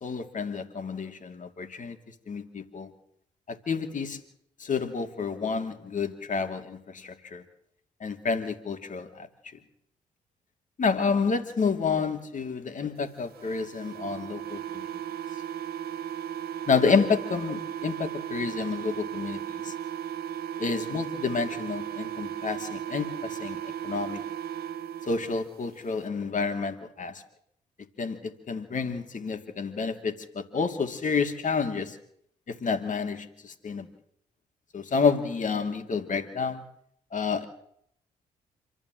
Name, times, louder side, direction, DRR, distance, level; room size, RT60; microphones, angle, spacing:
voice 1, 0.0-2.0 2.3-2.9 3.5-4.2 4.6-7.4 8.0-9.3 10.8-14.9 16.7-19.7 20.6-23.6 23.8-24.2 25.0-27.2 28.0-32.0 32.5-33.9 34.7-36.6 37.1-37.5, left 5 dB, 45° left, 7 dB, 2.6 m, -29 dB
sound 1, 13.3-25.4, right 10 dB, 55° right, 1.3 m, -36 dB
26.5 x 13.0 x 7.7 m, 0.72 s
hypercardioid pair, 45°, 19 cm